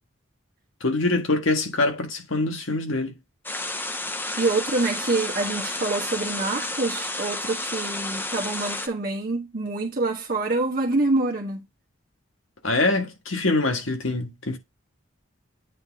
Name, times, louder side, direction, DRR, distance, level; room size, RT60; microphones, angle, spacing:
voice 1, 0.8-3.1 12.6-14.6, left 2 dB, 85° left, 1.6 m, -24 dB
sound 1, 3.4-8.9, left 2 dB, 10° left, 0.6 m, -31 dB
voice 2, 4.3-11.6, right 2 dB, 50° right, 1.3 m, -26 dB
8.9 x 3.8 x 3.5 m
head